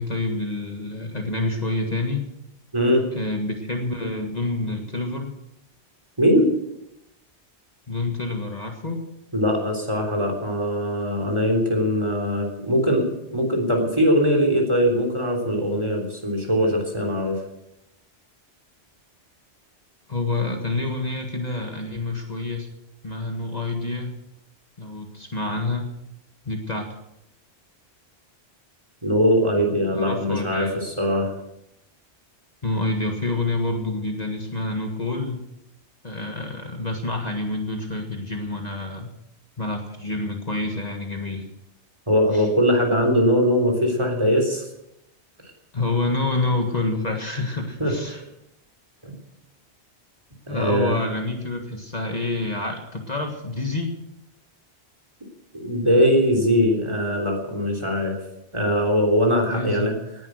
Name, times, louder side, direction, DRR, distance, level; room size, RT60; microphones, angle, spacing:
voice 1, 0.0-2.3 3.1-5.4 7.9-9.1 20.1-22.7 23.0-24.2 24.8-25.9 26.5-26.9 29.9-30.8 32.6-35.4 36.0-39.1 39.6-41.5 42.3-42.5 45.7-48.2 50.5-53.9 59.4-60.0, left 2 dB, 35° left, 3 dB, 1.8 m, -27 dB
voice 2, 2.7-3.0 6.2-6.5 9.3-13.0 13.3-17.4 29.0-31.3 42.1-44.6 47.8-48.2 49.0-49.2 50.5-51.0 55.5-58.1 58.5-60.0, equal, 25° right, 2 dB, 3.5 m, -21 dB
18.5 x 10.5 x 6.4 m, 0.85 s
omnidirectional pair, 1.1 m